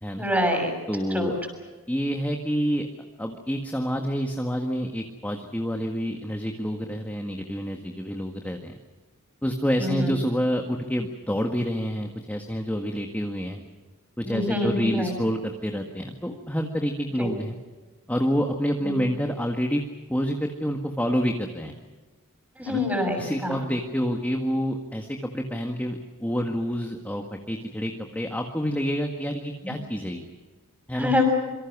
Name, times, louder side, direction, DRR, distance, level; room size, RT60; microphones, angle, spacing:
voice 1, 0.1-0.7 1.1-1.3 9.8-10.2 14.2-15.1 17.2-17.3 18.8-19.0 22.6-23.7 29.6-29.7 30.9-31.2, left 1 dB, 5° right, 4 dB, 6.3 m, -26 dB
voice 2, 0.9-1.4 1.9-2.9 3.2-8.7 9.4-13.6 14.2-17.6 18.1-19.8 20.1-21.8 22.7-22.8 23.2-30.3 30.9-31.1, equal, 10° left, 3 dB, 1.7 m, -28 dB
27.0 x 24.5 x 6.1 m, 1.3 s
head